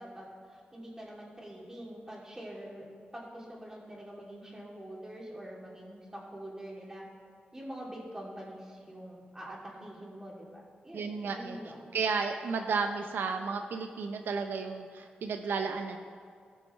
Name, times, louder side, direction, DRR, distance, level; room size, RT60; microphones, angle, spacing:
voice 1, 0.0-7.0 7.5-11.9, equal, 15° right, -4 dB, 2.7 m, -45 dB
voice 2, 10.9-11.6 11.9-16.0, right 5 dB, 85° right, 5 dB, 0.6 m, -33 dB
18.0 x 6.4 x 3.2 m, 2.2 s
cardioid pair, 90°, 3 cm